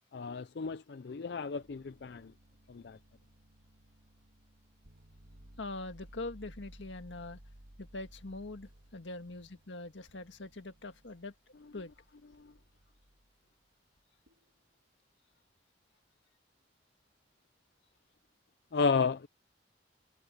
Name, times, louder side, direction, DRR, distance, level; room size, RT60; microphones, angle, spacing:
voice 1, 0.1-2.3 2.7-3.0 12.3-12.5 18.7-19.3, left 5 dB, 65° left, 0.4 m, -33 dB
sound 1, 1.6-13.4 14.3-14.6, right 1 dB, 80° right, 1.9 m, -58 dB
voice 2, 5.6-7.4 7.8-11.3 11.7-11.9, left 2 dB, 90° left, 1.8 m, -43 dB
head